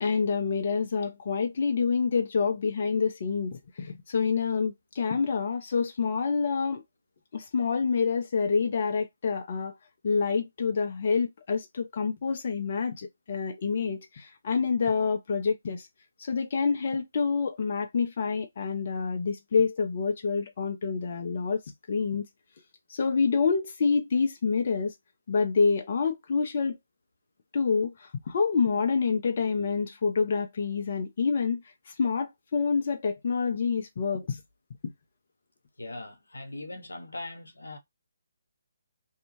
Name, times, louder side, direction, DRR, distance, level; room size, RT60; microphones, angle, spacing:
voice 1, 0.0-6.8 7.3-9.7 10.0-15.9 16.2-21.6 21.9-22.3 22.9-24.9 25.3-26.8 27.5-34.4, left 5 dB, 50° left, 0.6 m, -27 dB
voice 2, 35.8-37.8, left 2 dB, 85° left, 0.8 m, -40 dB
2.7 x 2.3 x 2.9 m
figure-of-eight pair, 145°, 0 cm